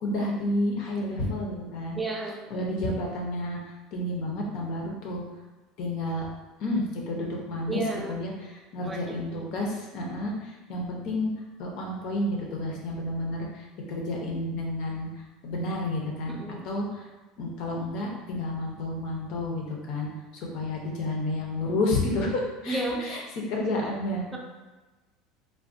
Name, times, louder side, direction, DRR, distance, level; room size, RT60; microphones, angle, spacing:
voice 1, 0.0-2.0 2.5-5.2 5.8-6.3 6.6-11.3 11.6-15.1 15.4-17.1 17.4-23.2 23.5-24.2, left 1 dB, 65° left, -1 dB, 0.8 m, -30 dB
voice 2, 2.0-2.6 7.7-8.2 8.8-9.5 16.3-16.6 22.7-23.0, right 2 dB, 15° right, 0 dB, 0.5 m, -33 dB
3.4 x 2.3 x 2.6 m, 1.2 s
supercardioid pair, 115°, 0 cm